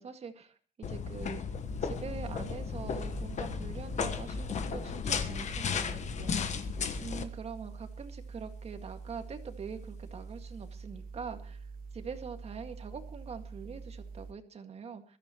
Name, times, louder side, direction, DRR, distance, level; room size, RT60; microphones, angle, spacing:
voice 1, 0.0-1.4 1.8-6.3 7.0-11.7 11.9-15.2, right 6 dB, 40° right, 6 dB, 2.0 m, -44 dB
sound 1, 0.8-7.2, left 6 dB, 45° left, 1.4 m, -35 dB
sound 2, 1.6-14.3, right 4 dB, 60° right, 1.5 m, -45 dB
22.0 x 13.0 x 3.1 m, 0.40 s
cardioid pair, 110°, 17 cm